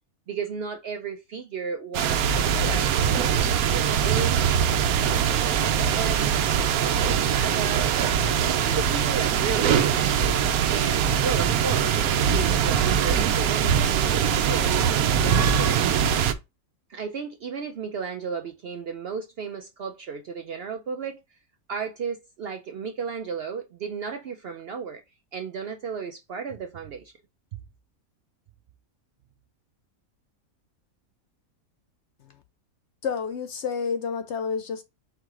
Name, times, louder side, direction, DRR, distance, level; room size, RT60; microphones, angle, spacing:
voice 1, 0.3-2.9 3.2-4.6 4.9-8.0 8.4-10.2 10.7-14.8 15.2-16.0 16.9-21.2 21.7-25.0 25.3-27.1, right 6 dB, 65° right, 0.6 m, -34 dB
sound 1, 1.9-16.3, right 8 dB, 85° right, 1.1 m, -22 dB
voice 2, 33.0-34.8, left 6 dB, 65° left, 0.7 m, -29 dB
4.7 x 2.4 x 4.6 m
omnidirectional pair, 1.5 m